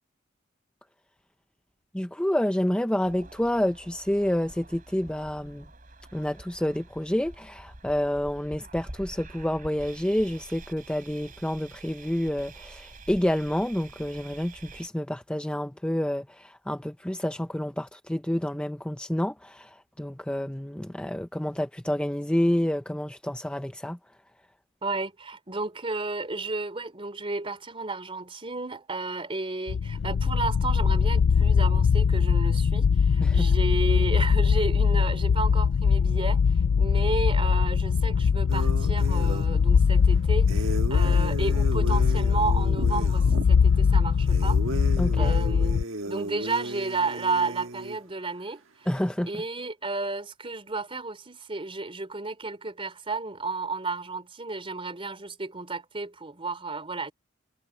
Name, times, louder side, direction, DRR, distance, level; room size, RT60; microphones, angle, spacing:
voice 1, 1.9-5.6 6.1-19.7 20.0-24.0 33.2-33.5 45.0-45.4 48.9-49.3, left 1 dB, 5° left, 0.5 m, -28 dB
sound 1, 3.0-14.9, right 2 dB, 45° right, 4.1 m, -47 dB
voice 2, 24.8-44.6 45.2-48.9 49.2-57.1, right 3 dB, 30° right, 3.8 m, -32 dB
sound 2, 29.7-45.8, left 6 dB, 70° left, 0.4 m, -22 dB
sound 3, 38.5-39.5 40.5-43.5 44.3-48.0, right 2 dB, 80° right, 1.5 m, -35 dB
head